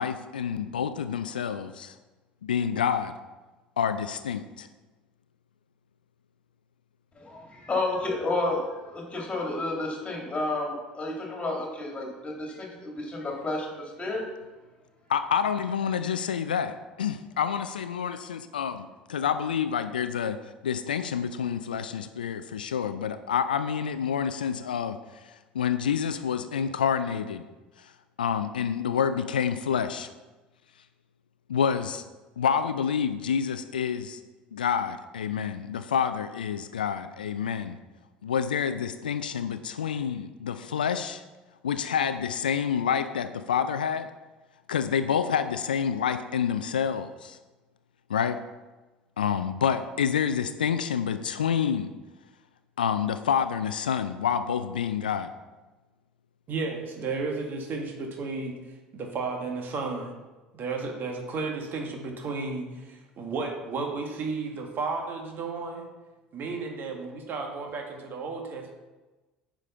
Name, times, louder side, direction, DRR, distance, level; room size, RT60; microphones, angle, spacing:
voice 1, 0.0-2.0 2.4-3.1 3.8-4.7 15.1-27.4 27.8-27.9 28.2-30.1 31.5-32.0 32.4-34.2 34.5-37.8 38.2-41.2 41.6-44.1 44.7-47.4 48.1-48.4 49.2-51.9 52.8-55.3, left 7 dB, 80° left, 11 dB, 0.4 m, -28 dB
voice 2, 7.2-14.3, left 2 dB, 25° left, -1 dB, 3.1 m, -31 dB
voice 3, 56.5-60.1 60.5-65.9 66.3-68.7, right 4 dB, 45° right, 2 dB, 1.8 m, -33 dB
9.7 x 5.1 x 5.6 m, 1.2 s
figure-of-eight pair, 65°, 5 cm